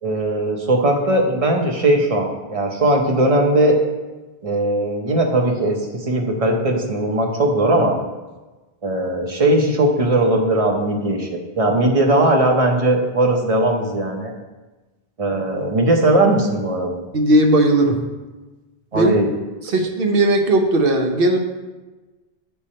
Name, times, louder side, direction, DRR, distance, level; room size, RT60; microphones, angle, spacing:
voice 1, 0.0-3.8 4.4-8.0 8.8-11.3 11.6-14.3 15.2-17.0 18.9-19.3, right 1 dB, 35° right, 2 dB, 0.9 m, -18 dB
voice 2, 17.1-18.0 18.9-19.1 19.7-21.4, right 1 dB, 65° right, 4 dB, 1.0 m, -16 dB
9.9 x 3.4 x 4.3 m, 1.2 s
omnidirectional pair, 1.0 m